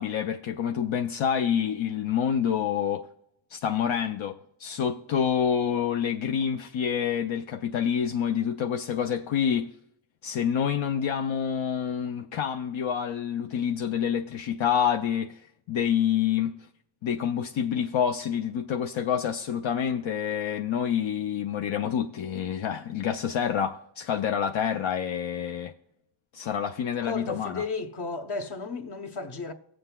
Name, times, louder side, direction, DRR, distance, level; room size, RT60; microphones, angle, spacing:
voice 1, 0.0-3.1 3.5-9.7 10.2-16.5 17.0-25.7 26.3-27.6, left 8 dB, 80° left, 0.5 m, -27 dB
voice 2, 27.0-29.5, left 4 dB, 55° left, 1.0 m, -33 dB
18.5 x 7.7 x 2.3 m
wide cardioid pair, 85°, 46 cm